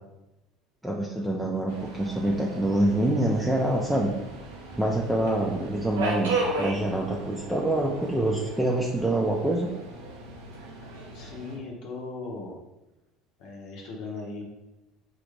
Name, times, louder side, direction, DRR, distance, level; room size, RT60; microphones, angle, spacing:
voice 1, 0.8-4.1 4.8-9.7, right 1 dB, 5° right, -2 dB, 0.5 m, -26 dB
Subway metro underground, 1.7-11.6, right 2 dB, 90° right, 0.7 m, -36 dB
voice 2, 11.1-12.6 13.4-14.4, left 3 dB, 65° left, -1 dB, 0.8 m, -38 dB
3.8 x 2.5 x 3.2 m, 0.95 s
hypercardioid pair, 75°, 0 cm